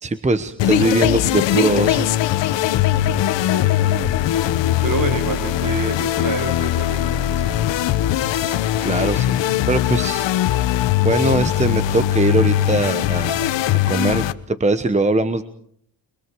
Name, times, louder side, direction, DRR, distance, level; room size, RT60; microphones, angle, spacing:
voice 1, 0.0-2.1 8.8-9.3 9.7-10.3 11.0-13.6 13.9-15.4, right 2 dB, 15° right, 12 dB, 1.1 m, -21 dB
sound 1, 0.6-14.3, left 12 dB, 70° left, 1.1 m, -20 dB
voice 2, 2.9-4.1 4.8-7.6, right 4 dB, 45° right, 6 dB, 3.9 m, -29 dB
29.0 x 22.5 x 4.7 m, 0.63 s
cardioid pair, 105°, 45 cm